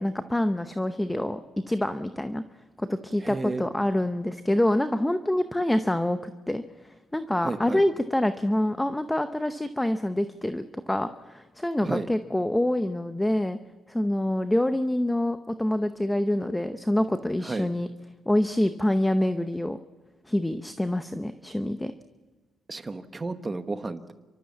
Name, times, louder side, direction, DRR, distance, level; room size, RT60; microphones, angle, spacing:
voice 1, 0.0-1.4 1.7-2.4 2.8-6.6 7.1-13.6 13.9-17.9 18.3-19.8 20.3-21.9, left 1 dB, 10° left, 10 dB, 0.8 m, -26 dB
voice 2, 3.2-3.6 7.4-7.8 11.8-12.1 17.5-17.7 22.7-24.1, right 3 dB, 25° right, 9 dB, 1.2 m, -32 dB
30.0 x 13.5 x 7.4 m, 1.2 s
cardioid pair, 90°, 0 cm